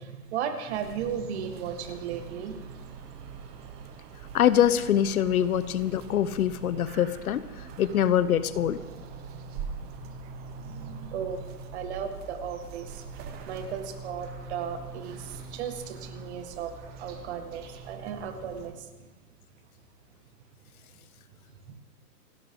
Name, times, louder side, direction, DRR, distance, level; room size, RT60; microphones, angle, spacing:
voice 1, 0.0-2.6 10.0-10.1 10.6-11.5 11.7-12.9 13.5-15.2 15.5-16.7 17.0-18.8, right 8 dB, 45° right, 7 dB, 2.0 m, -35 dB
sound 1, 0.7-18.7, right 4 dB, 20° right, 1.0 m, -44 dB
sound 2, 1.7-15.4, right 3 dB, 85° right, 2.1 m, -48 dB
voice 2, 4.3-7.4 7.8-8.8, left 10 dB, 65° left, 15 dB, 1.0 m, -24 dB
28.5 x 11.0 x 3.9 m, 1.2 s
hypercardioid pair, 145°, 47 cm